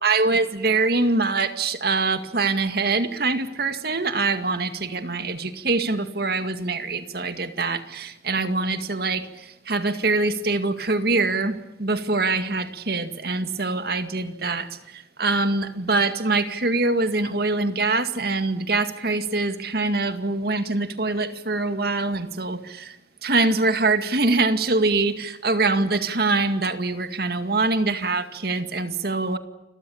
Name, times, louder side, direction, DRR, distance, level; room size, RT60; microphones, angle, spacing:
voice 1, 0.0-29.4, right 3 dB, 55° right, 9 dB, 2.1 m, -24 dB
29.5 x 23.0 x 7.2 m, 0.92 s
head